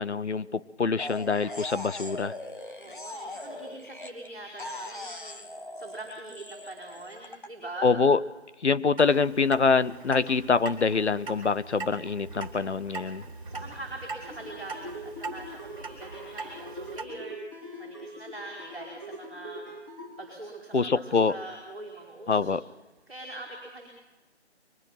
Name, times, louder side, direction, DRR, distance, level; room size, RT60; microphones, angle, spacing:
voice 1, 0.0-2.3 7.8-8.2 8.6-13.2 20.7-21.4 22.3-22.6, left 4 dB, 70° left, 15 dB, 0.9 m, -25 dB
sound 1, 1.0-4.3 4.6-7.5, left 1 dB, 45° left, 1.7 m, -40 dB
voice 2, 2.8-7.9 13.4-19.6 20.2-22.6 23.1-23.9, right 2 dB, ahead, -16 dB, 2.5 m, -43 dB
Clock, 9.0-17.0, right 4 dB, 30° right, 3.1 m, -41 dB
sound 2, 14.2-20.1, right 1 dB, 20° left, 5.1 m, -42 dB
22.5 x 21.0 x 5.9 m, 1.2 s
figure-of-eight pair, 175°, 35 cm